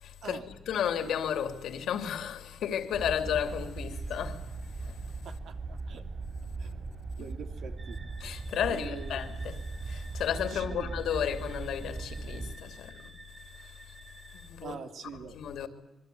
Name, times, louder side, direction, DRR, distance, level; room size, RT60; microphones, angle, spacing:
voice 1, 0.0-4.4 4.8-5.0 8.2-13.1 14.3-14.7 15.0-15.7, left 9 dB, 75° left, 2.9 m, -33 dB
sound 1, 2.9-12.5, right 3 dB, 35° right, 7.8 m, -39 dB
voice 2, 5.2-6.1 6.6-8.0 8.7-9.2 10.5-11.0 14.6-15.4, right 6 dB, 65° right, 3.0 m, -45 dB
sound 2, 7.8-14.5, right 2 dB, 20° right, 3.2 m, -53 dB
26.0 x 23.0 x 9.4 m
cardioid pair, 120°, 0 cm